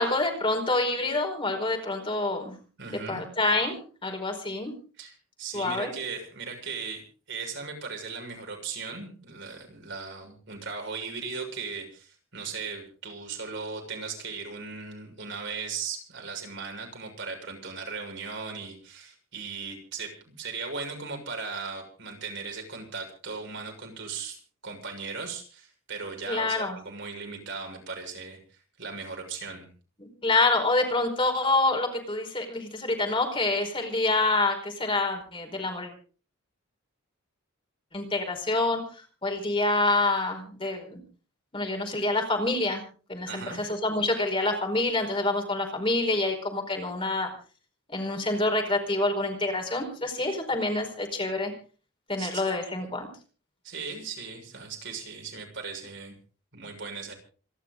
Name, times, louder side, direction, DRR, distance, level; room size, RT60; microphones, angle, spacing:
voice 1, 0.0-2.5 2.9-4.7 5.5-5.9 26.3-26.8 30.0-35.9 37.9-41.0 41.5-42.8 43.1-47.3 47.9-51.5 52.1-53.1, left 2 dB, 25° left, 3 dB, 4.8 m, -27 dB
voice 2, 2.8-3.2 5.0-24.4 24.6-29.7 43.3-43.6 52.2-52.4 53.6-56.1 56.5-57.1, right 5 dB, 55° right, 2 dB, 6.6 m, -37 dB
27.5 x 12.0 x 3.9 m, 0.39 s
head